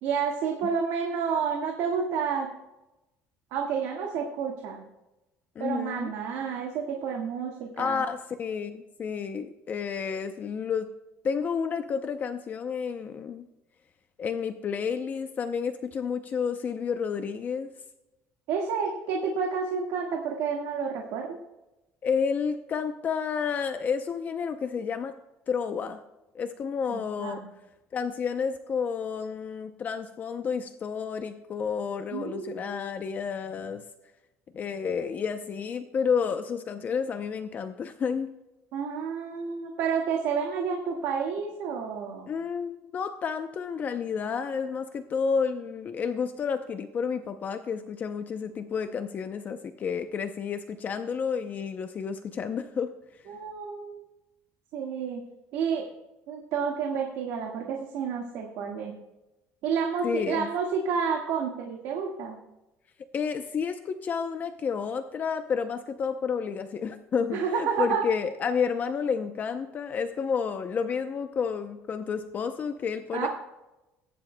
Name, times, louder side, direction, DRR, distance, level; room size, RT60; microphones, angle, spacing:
voice 1, 0.0-2.5 3.5-4.8 5.6-8.0 18.5-21.4 26.9-27.5 32.1-32.8 38.7-42.3 53.3-54.0 54.7-55.2 55.5-55.9 56.3-58.9 59.6-62.4 67.3-68.0 73.1-73.3, right 6 dB, 80° right, 0 dB, 1.6 m, -30 dB
voice 2, 5.6-6.1 7.8-10.9 11.2-13.4 14.2-17.7 22.0-25.1 25.5-26.0 26.3-27.4 27.9-33.8 34.5-38.3 42.3-52.9 60.0-60.5 63.1-73.3, left 6 dB, 35° left, 8 dB, 0.6 m, -30 dB
19.0 x 10.5 x 2.2 m, 0.97 s
cardioid pair, 150°, 5 cm